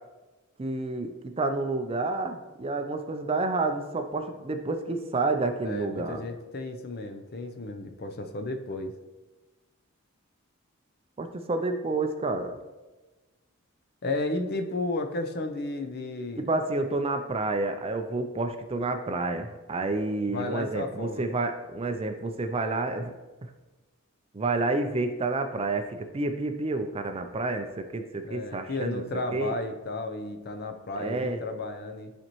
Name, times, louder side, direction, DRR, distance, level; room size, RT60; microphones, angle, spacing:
voice 1, 0.6-6.2 11.2-12.6 16.4-23.1 23.4-23.5 24.3-29.0 29.3-29.6 31.0-31.4, right 3 dB, 25° right, 7 dB, 0.4 m, -29 dB
voice 2, 5.6-8.9 14.0-16.5 20.3-21.2 28.2-32.1, left 2 dB, 45° left, 6 dB, 0.6 m, -33 dB
10.5 x 4.3 x 3.0 m, 1.2 s
head